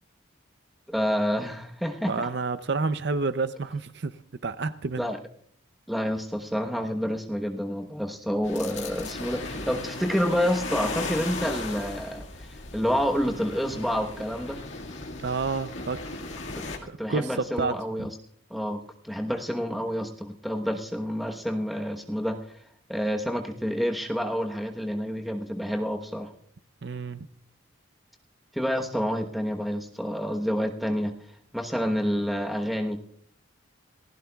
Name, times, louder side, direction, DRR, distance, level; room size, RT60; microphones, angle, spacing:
voice 1, 0.9-2.3 5.0-5.2 5.9-12.2 12.7-14.6 16.5-16.6 17.0-18.1 18.5-22.4 22.9-26.3 28.5-31.1 31.5-33.0, equal, ahead, 4 dB, 1.0 m, -28 dB
voice 2, 2.1-4.2 4.4-5.1 15.2-16.2 16.9-18.1 26.8-27.3, right 4 dB, 55° right, 12 dB, 0.6 m, -29 dB
sound 1, 8.4-16.8, left 3 dB, 70° left, 1.9 m, -36 dB
28.5 x 15.0 x 2.3 m, 0.63 s
head